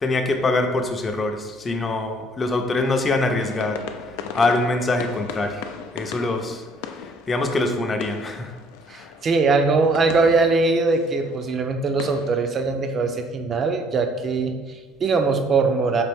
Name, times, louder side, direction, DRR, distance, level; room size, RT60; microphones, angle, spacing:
voice 1, 0.0-5.7 5.9-6.6 6.9-8.5 8.9-9.1, left 2 dB, 25° left, 4 dB, 0.5 m, -24 dB
sound 1, 3.4-12.5, left 7 dB, 80° left, 0.3 m, -38 dB
voice 2, 8.9-16.0, right 3 dB, 40° right, 6 dB, 0.4 m, -21 dB
4.1 x 2.5 x 3.5 m, 1.3 s
supercardioid pair, 100°, 0 cm